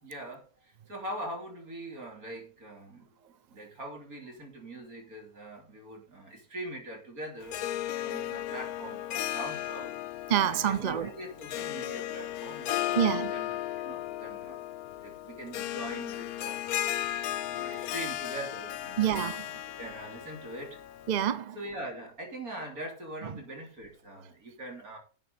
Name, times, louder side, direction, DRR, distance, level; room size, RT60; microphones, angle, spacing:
voice 1, 0.0-7.6 8.0-9.9 10.6-14.7 15.0-16.7 16.9-17.0 17.5-19.2 19.8-20.8 21.5-25.0, right 1 dB, 65° right, 3.8 m, -42 dB
Harp, 7.4-21.2, left 13 dB, 70° left, 1.0 m, -35 dB
voice 2, 10.3-11.1 12.9-13.3 19.0-19.5 21.1-21.6 23.2-23.3, right 10 dB, 45° right, 0.5 m, -27 dB
11.0 x 8.0 x 4.0 m
omnidirectional pair, 1.7 m